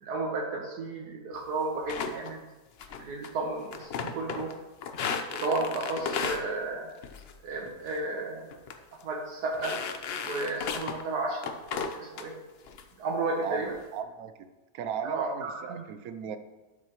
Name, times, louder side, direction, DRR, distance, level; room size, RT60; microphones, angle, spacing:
voice 1, 0.0-2.4 3.0-4.5 5.3-6.9 7.4-8.5 9.0-9.7 10.3-11.4 11.7-12.3 13.0-13.7 15.0-15.8, right 3 dB, 90° right, 0 dB, 1.6 m, -33 dB
sound 1, 1.9-2.3 2.8-3.3 3.6-4.5 4.8-6.4 7.0-7.4 7.7-8.0 8.5-8.7 9.0-9.1 9.5-11.0 11.4-12.3 12.7-12.8 13.2-13.7, left 5 dB, 60° left, 0.6 m, -35 dB
voice 2, 13.9-14.3 14.7-16.4, right 7 dB, 70° right, 9 dB, 1.0 m, -35 dB
12.0 x 6.4 x 3.0 m, 1.1 s
omnidirectional pair, 1.7 m